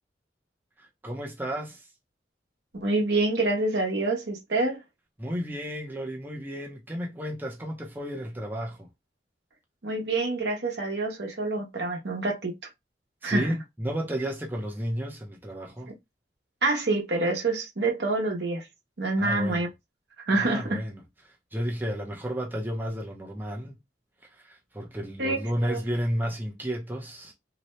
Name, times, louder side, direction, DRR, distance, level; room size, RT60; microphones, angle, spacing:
voice 1, 0.8-1.9 5.2-8.9 13.2-15.9 19.2-19.7 20.4-20.9 21.2-23.7 24.3-27.3, equal, 10° right, 0.6 m, -32 dB
voice 2, 2.7-4.8 9.8-12.5 13.2-13.5 16.6-18.6 19.0-19.7 20.3-20.8 25.2-25.8, right 2 dB, 70° right, 0.8 m, -26 dB
2.7 x 2.1 x 3.0 m
head